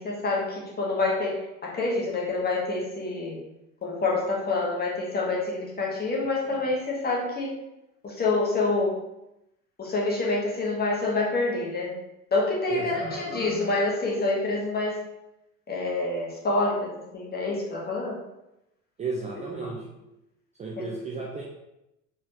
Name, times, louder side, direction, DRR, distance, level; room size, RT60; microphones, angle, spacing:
voice 1, 0.0-3.4 3.8-7.5 8.0-8.9 9.8-11.9 12.3-15.0 15.7-18.2 19.6-19.7, left 3 dB, 20° left, -3 dB, 1.3 m, -27 dB
voice 2, 12.7-13.2 19.0-19.9 20.6-21.4, right 3 dB, 15° right, -2 dB, 0.5 m, -32 dB
4.2 x 3.7 x 2.9 m, 0.88 s
figure-of-eight pair, 70°, 42 cm